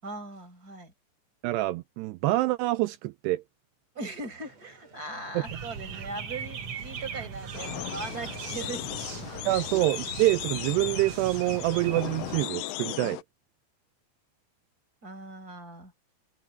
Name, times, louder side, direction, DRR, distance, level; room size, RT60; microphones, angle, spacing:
voice 1, 0.0-0.9 3.9-9.6 15.0-15.9, right 2 dB, 20° right, 5.8 m, -40 dB
voice 2, 1.4-3.4 5.3-5.4 9.5-13.2, right 18 dB, 80° right, 2.5 m, -26 dB
sound 1, 4.4-12.3, right 4 dB, 35° right, 7.1 m, -55 dB
sound 2, 5.4-12.4, right 6 dB, 60° right, 1.6 m, -39 dB
sound 3, 7.5-13.2, left 18 dB, 85° left, 2.4 m, -37 dB
omnidirectional pair, 5.3 m